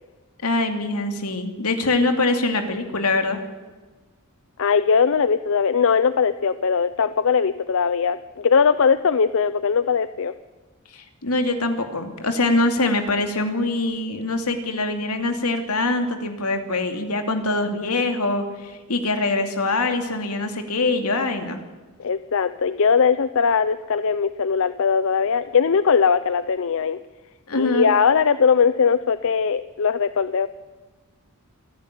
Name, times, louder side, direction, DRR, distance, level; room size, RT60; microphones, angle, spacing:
voice 1, 0.4-3.4 10.9-21.6 27.5-27.9, left 2 dB, 90° left, 6 dB, 2.7 m, -23 dB
voice 2, 4.6-10.3 22.0-27.0 27.6-30.5, left 6 dB, 65° left, 14 dB, 0.6 m, -20 dB
27.0 x 11.0 x 9.8 m, 1.3 s
head